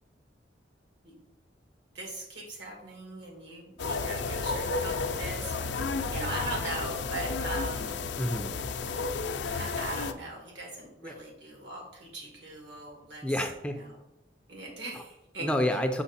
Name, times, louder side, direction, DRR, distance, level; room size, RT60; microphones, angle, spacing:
voice 1, 1.9-5.7 6.1-8.0 9.5-13.2 13.7-14.0 14.5-15.5, right 1 dB, 75° right, -1 dB, 2.3 m, -39 dB
sound 1, 3.8-10.1, left 4 dB, 75° left, 0.5 m, -32 dB
voice 2, 8.2-8.5 11.0-11.1 13.2-13.8 14.9-15.0 15.4-16.0, left 1 dB, 5° left, 6 dB, 0.4 m, -29 dB
5.8 x 5.8 x 4.1 m, 0.91 s
head